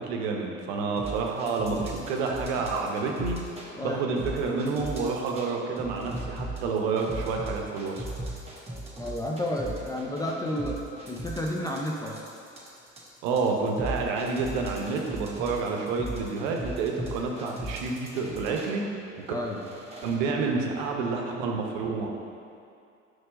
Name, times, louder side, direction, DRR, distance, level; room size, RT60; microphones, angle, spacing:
voice 1, 0.0-3.4 3.8-8.1 13.2-19.1 20.0-22.1, right 4 dB, 55° right, 1 dB, 0.8 m, -29 dB
sound 1, 1.0-3.7 4.2-5.5 5.8-18.7 19.3-20.2, right 1 dB, 15° right, 1.2 m, -37 dB
voice 2, 3.8-4.1 9.0-12.2 19.3-19.7, left 1 dB, 10° left, -1 dB, 0.4 m, -31 dB
4.6 x 4.3 x 5.2 m, 2.5 s
figure-of-eight pair, 60°, 36 cm